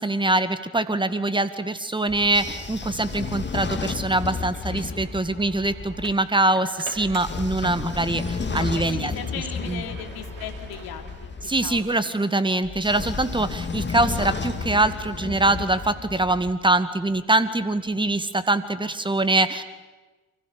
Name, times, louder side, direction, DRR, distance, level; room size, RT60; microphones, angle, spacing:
voice 1, 0.0-9.1 9.7-9.8 11.5-19.6, right 2 dB, 10° right, 12 dB, 2.0 m, -23 dB
Train / Sliding door, 2.1-6.1 6.9-11.8 12.6-16.5, left 4 dB, 25° left, 2.8 m, -32 dB
sound 1, 5.9-8.1 8.6-11.8, right 6 dB, 65° right, 4.4 m, -45 dB
voice 2, 8.6-12.1, left 8 dB, 55° left, 5 dB, 3.1 m, -37 dB
30.0 x 24.5 x 6.8 m, 1.2 s
figure-of-eight pair, 55°, 43 cm